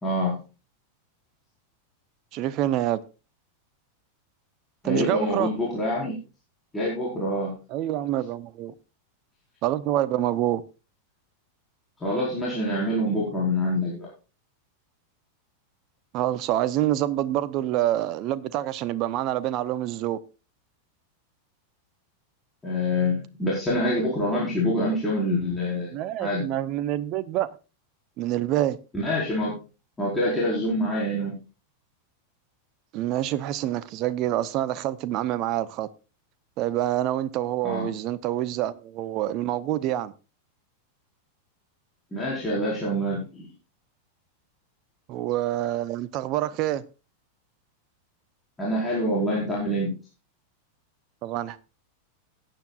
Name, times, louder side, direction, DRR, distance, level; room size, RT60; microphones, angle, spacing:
voice 1, 0.0-0.4 4.8-6.2 6.7-7.6 12.0-14.1 22.6-25.9 26.2-26.5 28.9-29.6 30.0-31.4 37.6-37.9 42.1-43.5 48.6-50.0, left 1 dB, 10° left, 4.6 m, -26 dB
voice 2, 2.3-3.0 4.8-5.5 7.7-8.7 9.6-10.6 16.1-20.2 25.9-27.5 28.2-28.8 32.9-35.9 36.6-40.1 45.1-46.8 51.2-51.6, right 13 dB, 40° right, 0.7 m, -26 dB
18.5 x 9.5 x 2.4 m
figure-of-eight pair, 90°, 0 cm